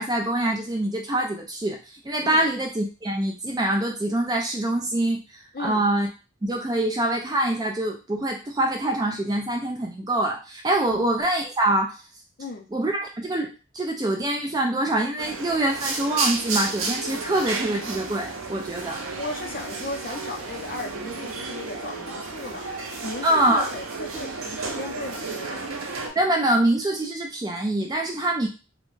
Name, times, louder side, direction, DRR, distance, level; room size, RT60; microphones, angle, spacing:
voice 1, 0.0-1.8 2.0-5.2 5.6-6.1 6.4-12.0 12.7-19.0 23.2-23.7 26.2-28.5, right 1 dB, 20° right, 1 dB, 0.3 m, -24 dB
sound 1, 15.2-26.1, right 3 dB, 80° right, 0.6 m, -32 dB
voice 2, 19.1-22.7 23.0-25.7, left 2 dB, 45° left, 3 dB, 0.5 m, -36 dB
2.4 x 2.1 x 3.1 m, 0.32 s
head